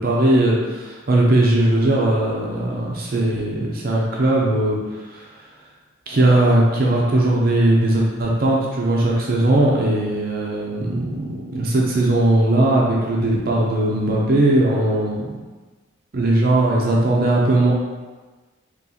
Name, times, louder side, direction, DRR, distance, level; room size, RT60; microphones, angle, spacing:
voice 1, 0.0-5.3 6.1-15.2 16.1-17.7, right 1 dB, 50° right, -3 dB, 0.5 m, -19 dB
3.9 x 2.9 x 2.8 m, 1.3 s
head